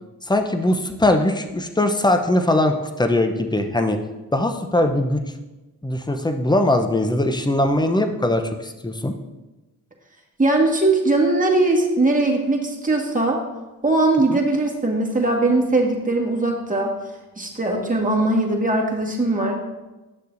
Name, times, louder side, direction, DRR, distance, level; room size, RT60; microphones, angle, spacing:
voice 1, 0.2-4.0 4.3-5.2 5.8-9.1 14.3-14.4, left 1 dB, 10° left, 6 dB, 0.8 m, -21 dB
voice 2, 10.4-13.4 13.8-16.9 17.4-19.5, right 2 dB, 20° right, -1 dB, 1.9 m, -20 dB
9.7 x 6.5 x 2.7 m, 1.1 s
supercardioid pair, 45°, 42 cm